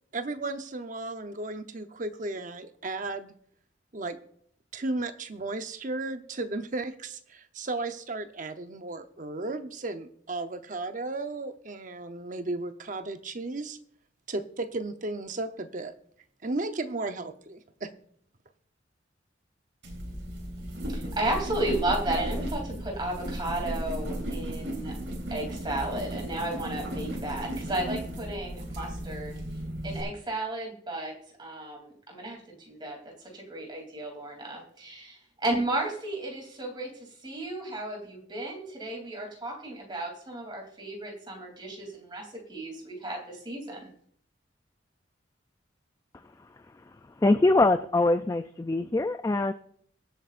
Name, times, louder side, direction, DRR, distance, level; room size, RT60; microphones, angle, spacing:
voice 1, 0.1-3.3 3.9-4.2 4.7-13.8 14.3-15.9 16.4-17.9, right 2 dB, 45° right, 8 dB, 0.8 m, -34 dB
sound 1, 19.8-30.0, right 1 dB, 85° right, 3.5 m, -35 dB
voice 2, 20.9-24.9 25.3-29.3 29.8-31.1 31.4-33.0 33.3-36.9 37.2-43.9, right 1 dB, 25° right, 0 dB, 3.1 m, -33 dB
voice 3, 47.2-49.5, left 2 dB, 20° left, 9 dB, 0.3 m, -23 dB
23.0 x 8.1 x 2.5 m, 0.64 s
head